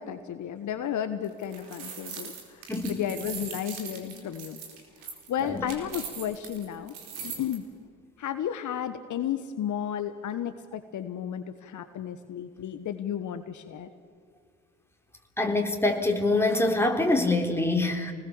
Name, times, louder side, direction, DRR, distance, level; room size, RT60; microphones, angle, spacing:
voice 1, 0.0-4.6 5.3-7.0 7.2-7.6 8.2-13.9, left 9 dB, 50° left, 9 dB, 1.4 m, -33 dB
sound 1, 1.2-7.6, right 6 dB, 75° right, 4.4 m, -41 dB
voice 2, 15.4-18.1, left 2 dB, 5° left, 3 dB, 3.9 m, -25 dB
27.5 x 20.0 x 7.2 m, 2.1 s
hypercardioid pair, 50°, 37 cm